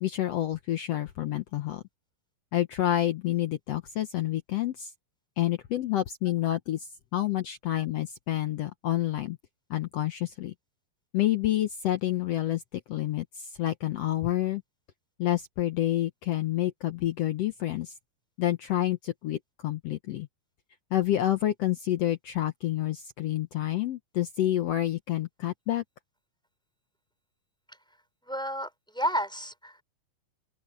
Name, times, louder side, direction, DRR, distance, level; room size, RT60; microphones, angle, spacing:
voice 1, 0.0-1.8 2.5-4.9 5.4-9.4 9.7-10.5 11.1-14.6 15.2-17.9 18.4-20.3 20.9-25.8, left 13 dB, 80° left, 1.4 m, -28 dB
voice 2, 28.3-29.8, equal, ahead, 4.0 m, -31 dB
open air
omnidirectional pair, 4.0 m